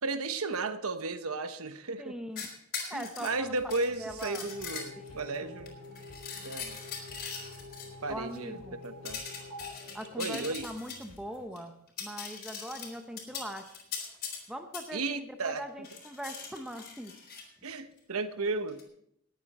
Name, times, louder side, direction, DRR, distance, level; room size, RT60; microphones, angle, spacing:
voice 1, 0.0-2.2 2.9-5.8 6.4-6.8 8.0-9.2 10.2-10.7 14.9-15.6 17.6-18.8, right 3 dB, 75° right, 9 dB, 1.1 m, -34 dB
voice 2, 2.0-2.5 2.9-3.5 4.0-4.8 5.1-5.5 8.1-8.8 9.9-11.7 12.0-13.7 14.5-17.1, equal, 5° right, 5 dB, 0.8 m, -41 dB
sound 1, 2.4-5.2 5.7-7.9 9.1-11.2 11.6-11.7 11.9-14.4 14.7-14.9 15.8-17.4 18.7-18.8, left 6 dB, 45° left, 3.9 m, -41 dB
sound 2, 3.3-11.5, left 1 dB, 90° left, 3.4 m, -57 dB
sound 3, 4.4-10.9, left 2 dB, 30° right, 5.9 m, -48 dB
19.5 x 9.0 x 4.3 m, 0.72 s
head